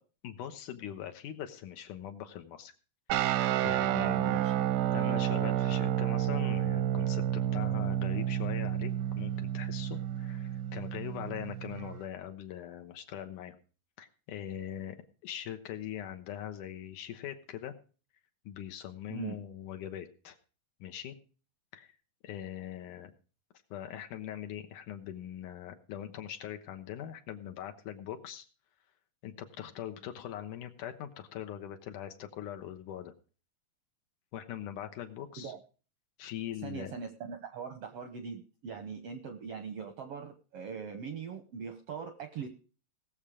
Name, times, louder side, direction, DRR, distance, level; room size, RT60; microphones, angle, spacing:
voice 1, 0.2-2.7 3.6-4.4 4.9-13.6 14.0-17.8 18.5-20.4 20.8-21.2 21.7-21.9 22.2-23.1 23.7-28.5 29.2-33.1 34.3-35.5 36.2-36.9, left 10 dB, 70° left, 6 dB, 2.5 m, -41 dB
sound 1, 3.1-12.0, right 11 dB, 85° right, 2.6 m, -30 dB
voice 2, 3.9-4.5 19.1-19.4 35.4-35.6 36.6-42.5, right 6 dB, 65° right, 7 dB, 1.5 m, -41 dB
18.5 x 7.3 x 5.0 m, 0.37 s
omnidirectional pair, 4.0 m